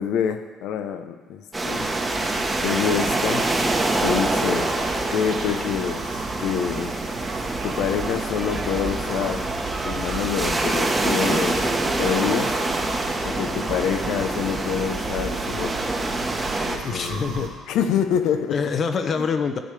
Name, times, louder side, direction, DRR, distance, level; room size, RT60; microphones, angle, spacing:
voice 1, 0.0-1.9 2.6-3.5 4.0-4.7 5.1-7.0 7.6-9.5 9.8-11.7 12.0-12.6 13.2-15.9 16.6-18.6 19.2-19.3, left 8 dB, 80° left, 0.7 m, -26 dB
sound 1, 1.5-16.8, right 2 dB, 15° right, 1.0 m, -26 dB
sound 2, 1.7-17.5, right 5 dB, 80° right, 2.2 m, -36 dB
voice 2, 16.8-17.5 18.5-19.6, left 5 dB, 40° left, 0.7 m, -25 dB
13.5 x 8.4 x 3.3 m
cardioid pair, 145°, 0 cm